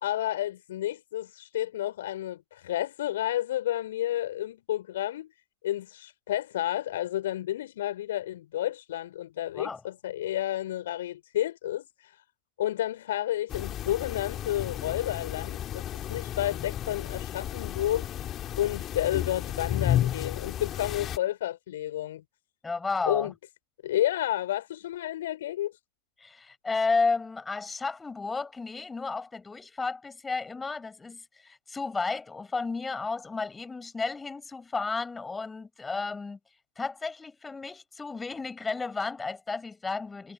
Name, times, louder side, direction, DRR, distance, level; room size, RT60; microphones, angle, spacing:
voice 1, 0.0-5.3 5.6-11.9 12.6-18.1 18.6-22.2 23.0-23.3 23.8-25.7, left 13 dB, 60° left, 4.4 m, -31 dB
sound 1, 13.5-21.2, left 11 dB, 30° left, 3.1 m, -32 dB
voice 2, 22.6-23.3 26.2-36.4 36.8-40.3, left 4 dB, 10° left, 6.4 m, -32 dB
figure-of-eight pair, 90°, 0 cm